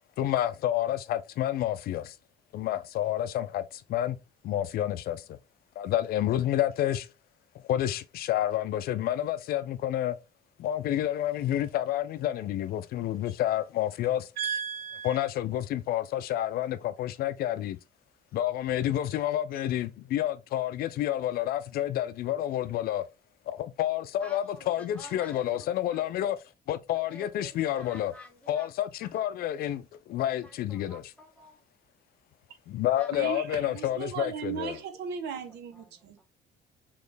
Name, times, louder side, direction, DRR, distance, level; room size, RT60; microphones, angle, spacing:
voice 1, 0.2-2.2 2.5-4.2 4.4-5.4 5.8-7.1 7.6-10.2 10.6-14.3 15.0-17.8 18.3-23.1 23.5-26.4 26.7-28.1 28.5-31.0 32.7-34.8, left 12 dB, 65° left, 0.4 m, -29 dB
voice 2, 14.4-15.3 33.1-36.2, right 7 dB, 80° right, 0.8 m, -36 dB
voice 3, 24.2-26.0 27.1-28.7 29.1-29.2 30.3-31.6 33.0-33.3 35.5-36.2, left 1 dB, 10° left, 1.3 m, -50 dB
4.2 x 3.1 x 3.2 m
cardioid pair, 110°, 17 cm